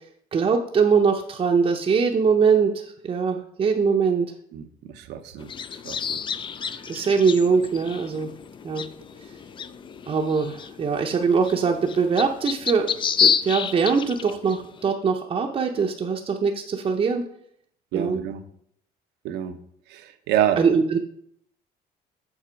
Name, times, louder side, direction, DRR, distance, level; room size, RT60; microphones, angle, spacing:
voice 1, 0.3-4.3 6.9-8.3 8.6-8.9 10.1-12.9 13.2-17.3 17.9-18.2 20.6-21.0, right 5 dB, 35° right, 2 dB, 0.6 m, -22 dB
voice 2, 4.5-5.5 5.8-6.2 6.7-6.8 17.9-18.4 19.2-19.5 19.9-20.6, right 11 dB, 85° right, 9 dB, 0.7 m, -27 dB
sound 1, 5.4-14.8, left 7 dB, 30° left, 0.3 m, -29 dB
7.3 x 4.0 x 5.1 m, 0.68 s
cardioid pair, 110°, 17 cm